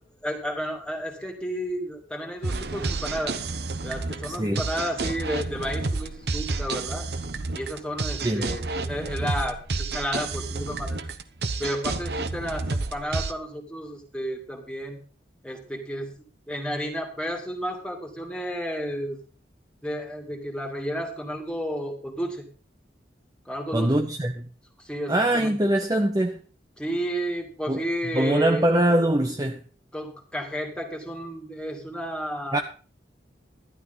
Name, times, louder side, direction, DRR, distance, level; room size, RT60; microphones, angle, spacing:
voice 1, 0.2-3.4 3.8-7.1 7.5-11.1 11.6-15.0 15.4-16.1 16.5-19.2 19.8-22.5 23.5-24.0 24.8-25.6 26.8-28.7 29.9-32.6, equal, 5° left, 2.5 m, -32 dB
sound 1, 2.4-13.3, right 3 dB, 60° right, 1.0 m, -30 dB
voice 2, 4.3-4.7 8.2-8.5 23.7-24.5 25.1-26.4 27.7-27.8 28.1-29.6 32.5-32.6, right 1 dB, 20° right, 0.8 m, -23 dB
12.5 x 12.0 x 4.0 m
head